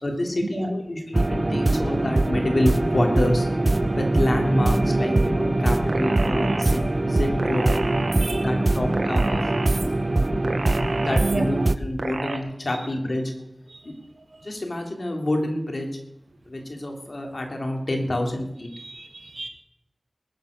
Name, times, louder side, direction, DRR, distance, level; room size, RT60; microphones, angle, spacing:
voice 1, 0.0-3.5 3.9-7.7 8.4-9.5 11.0-13.3 13.8-13.9 14.4-15.9 16.5-18.7, left 1 dB, 60° left, 2 dB, 3.2 m, -27 dB
sound 1, 1.1-11.8, right 2 dB, 45° right, 0.7 m, -22 dB
sound 2, 5.9-6.7 7.4-8.3 8.9-9.8 10.4-11.3 12.0-12.4, right 3 dB, 85° right, 1.7 m, -30 dB
voice 2, 8.2-8.5 9.8-10.2 11.2-11.7 12.7-12.9 13.7-13.8 14.2-14.5 18.7-19.5, right 2 dB, 65° right, 4 dB, 2.4 m, -34 dB
20.0 x 8.0 x 6.6 m, 0.79 s
wide cardioid pair, 45°, 0 cm